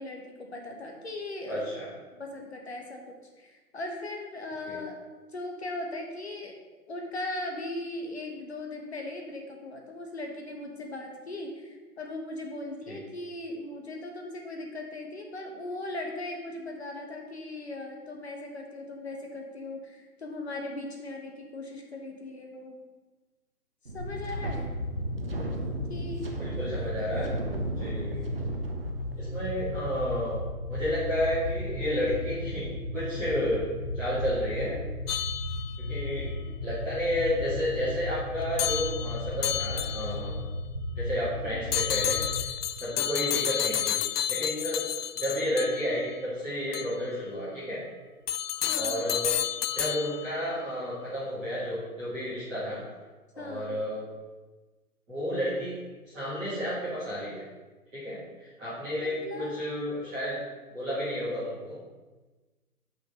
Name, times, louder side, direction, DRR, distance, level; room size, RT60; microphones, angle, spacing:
voice 1, 0.0-1.7 2.2-5.0 5.3-6.6 6.9-22.8 23.9-24.7 25.9-26.3 36.4-36.7 41.4-41.7 42.9-43.4 48.6-49.1 53.4-53.8 59.0-59.6, left 2 dB, 45° left, 2 dB, 1.4 m, -38 dB
voice 2, 1.5-1.8 4.6-4.8 12.8-13.0 26.4-27.4 27.7-28.2 29.1-32.7 32.9-33.6 33.9-34.7 35.8-36.3 36.6-40.4 40.9-42.5 42.8-44.0 44.3-44.8 45.2-47.8 48.7-49.4 49.7-52.8 53.3-54.0 55.1-55.8 56.0-57.4 57.9-60.4 60.7-61.8, equal, ahead, -22 dB, 1.1 m, -31 dB
Wind, 23.9-29.5, right 2 dB, 40° right, 0.9 m, -37 dB
sound 1, 24.0-42.4, left 1 dB, 30° left, 1.1 m, -35 dB
sound 2, 35.1-36.0 38.6-40.3 41.7-46.1 46.7-46.9 48.3-50.4, left 10 dB, 85° left, 0.5 m, -31 dB
6.4 x 5.7 x 6.6 m, 1.2 s
hypercardioid pair, 175°, 46 cm